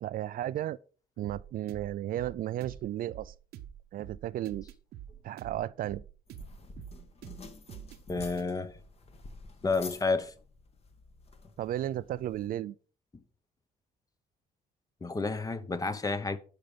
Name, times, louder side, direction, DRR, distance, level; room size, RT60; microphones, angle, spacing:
voice 1, 0.0-0.8 1.2-3.3 3.9-4.7 5.2-6.0 11.6-12.7, right 13 dB, 65° right, 0.4 m, -34 dB
sound 1, 1.2-8.5, right 10 dB, 90° right, 1.0 m, -47 dB
sound 2, 6.3-12.5, left 3 dB, 40° left, 1.6 m, -50 dB
voice 2, 8.1-8.7 9.6-10.3 15.0-16.4, left 3 dB, 20° left, 0.9 m, -30 dB
11.5 x 5.4 x 5.2 m
cardioid pair, 120°, 16 cm